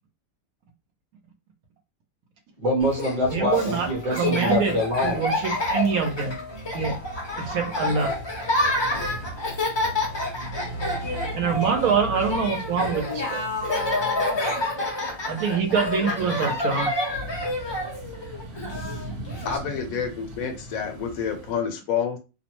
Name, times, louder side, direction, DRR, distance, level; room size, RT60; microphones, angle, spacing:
voice 1, 2.6-5.3, left 1 dB, 40° right, -2 dB, 1.0 m, -25 dB
Laughter, 2.8-19.6, left 2 dB, 35° left, 0.4 m, -28 dB
voice 2, 3.3-4.7 5.0-6.4 6.7-7.0 7.4-8.2 11.3-13.4 15.3-16.9, right 6 dB, 80° right, 3 dB, 1.2 m, -25 dB
sound 1, 4.5-21.5, right 1 dB, 55° right, 0.7 m, -40 dB
voice 3, 19.4-22.2, left 7 dB, 75° left, 6 dB, 1.0 m, -28 dB
2.7 x 2.1 x 2.9 m, 0.30 s
omnidirectional pair, 1.5 m